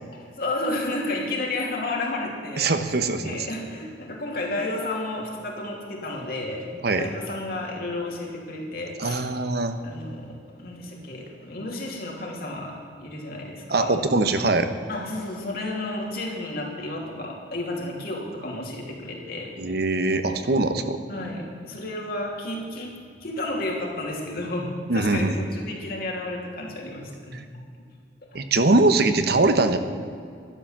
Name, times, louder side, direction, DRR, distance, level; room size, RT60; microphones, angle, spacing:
voice 1, 0.1-2.7 3.2-6.7 7.0-9.2 9.8-10.3 10.6-14.0 14.9-19.5 21.1-27.4 28.2-28.4, left 2 dB, 55° left, -1 dB, 3.0 m, -32 dB
voice 2, 2.6-3.4 6.8-7.1 9.0-9.8 13.7-14.7 19.6-21.0 24.9-25.4 27.3-27.4 28.3-29.8, right 2 dB, 60° right, 8 dB, 1.0 m, -22 dB
12.0 x 12.0 x 7.4 m, 2.2 s
head